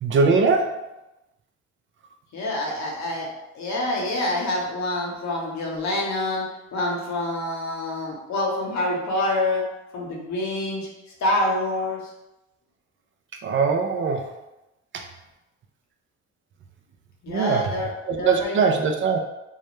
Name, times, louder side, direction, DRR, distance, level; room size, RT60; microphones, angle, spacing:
voice 1, 0.0-0.8 13.4-14.3 14.9-15.0 17.3-17.7 18.1-19.2, right 4 dB, 40° right, 4 dB, 0.4 m, -21 dB
voice 2, 2.3-3.3 3.5-6.4 6.7-9.6 9.9-10.9 11.2-12.0 17.2-18.6, left 1 dB, 65° left, -2 dB, 0.8 m, -26 dB
2.3 x 2.1 x 3.0 m, 0.94 s
cardioid pair, 90°, 30 cm